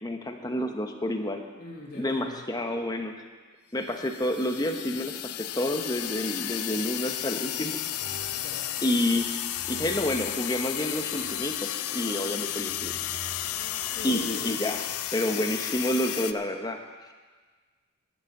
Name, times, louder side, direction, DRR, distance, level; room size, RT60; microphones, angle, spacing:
voice 1, 0.0-1.4 1.9-3.1 3.7-7.8 8.8-12.9 14.0-14.8 15.1-16.8, left 1 dB, 15° left, 4 dB, 0.9 m, -29 dB
voice 2, 1.6-2.4 8.3-8.7 13.9-14.5, left 2 dB, 45° left, -6 dB, 1.9 m, -41 dB
sound 1, 3.9-16.3, left 12 dB, 80° left, 0.6 m, -33 dB
sound 2, 7.7-9.2 9.5-14.3, equal, 70° right, 3.5 m, -47 dB
11.0 x 8.9 x 7.8 m, 1.4 s
head